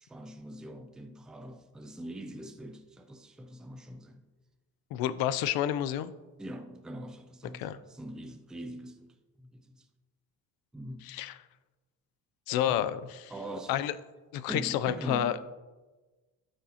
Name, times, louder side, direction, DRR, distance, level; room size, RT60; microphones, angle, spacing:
voice 1, 0.0-4.2 6.4-9.1 9.4-9.8 10.7-11.1 13.3-13.8 14.5-15.5, equal, ahead, 0.3 m, -42 dB
voice 2, 4.9-6.1 7.5-7.8 11.0-11.4 12.5-13.3 13.7-14.0 14.3-15.4, left 11 dB, 80° left, 0.6 m, -30 dB
12.0 x 6.5 x 2.9 m
cardioid pair, 160°, 35 cm